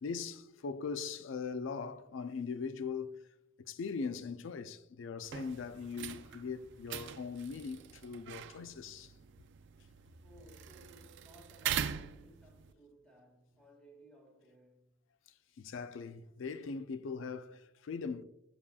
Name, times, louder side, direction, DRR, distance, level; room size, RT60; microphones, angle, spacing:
voice 1, 0.0-3.2 3.7-9.1 15.6-18.2, left 5 dB, 65° left, 0.4 m, -40 dB
sound 1, 5.2-12.7, right 9 dB, 60° right, 0.4 m, -42 dB
voice 2, 10.2-14.9, right 1 dB, 5° left, 1.7 m, -60 dB
7.1 x 7.0 x 2.3 m
head